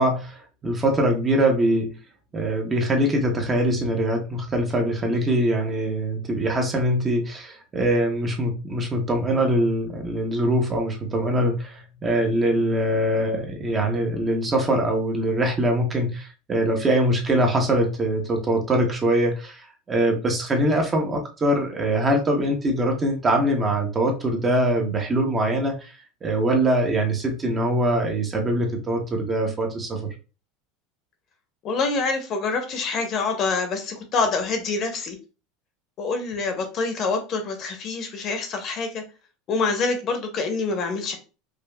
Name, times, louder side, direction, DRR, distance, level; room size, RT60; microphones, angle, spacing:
voice 1, 0.0-1.9 2.3-25.9 26.2-30.1, right 1 dB, 20° right, 0.7 m, -23 dB
voice 2, 31.6-35.2 36.0-39.0 39.5-41.2, left 4 dB, 40° left, 0.8 m, -26 dB
4.9 x 2.2 x 2.2 m
supercardioid pair, 140°, 0 cm